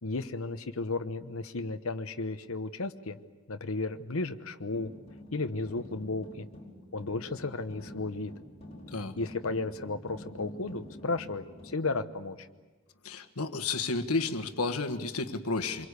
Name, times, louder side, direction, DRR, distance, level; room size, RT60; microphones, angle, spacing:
voice 1, 0.0-3.2 3.5-4.9 5.3-6.5 6.9-8.3 9.2-12.5, left 3 dB, 75° left, 8 dB, 1.0 m, -34 dB
sound 1, 4.7-11.7, left 1 dB, 30° left, 5.1 m, -47 dB
voice 2, 13.0-15.9, left 3 dB, 90° left, 7 dB, 1.5 m, -31 dB
26.5 x 23.0 x 8.3 m, 1.3 s
head